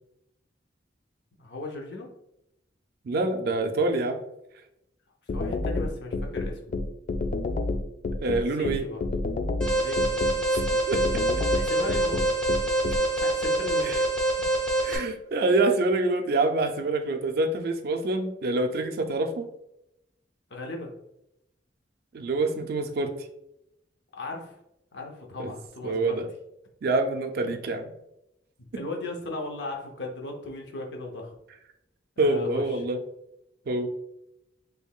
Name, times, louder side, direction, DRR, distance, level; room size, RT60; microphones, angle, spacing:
voice 1, 1.4-2.1 5.3-6.8 8.3-9.0 9.7-10.1 11.5-12.3 12.9-14.0 20.5-20.9 24.1-24.6 24.9-26.2 28.7-31.3 32.2-32.8, left 2 dB, 70° left, 1 dB, 0.7 m, -37 dB
voice 2, 3.0-4.2 8.2-8.8 10.9-11.0 13.8-14.0 14.8-19.5 22.1-23.1 25.4-25.5 25.8-26.3 26.8-27.9 32.2-33.0 33.7-33.9, right 2 dB, 55° right, 5 dB, 0.4 m, -26 dB
sound 1, 5.3-13.0, left 3 dB, 45° left, 0.3 m, -28 dB
Alarm, 9.6-15.0, right 1 dB, 5° left, 0.7 m, -25 dB
3.6 x 3.3 x 2.3 m, 0.83 s
head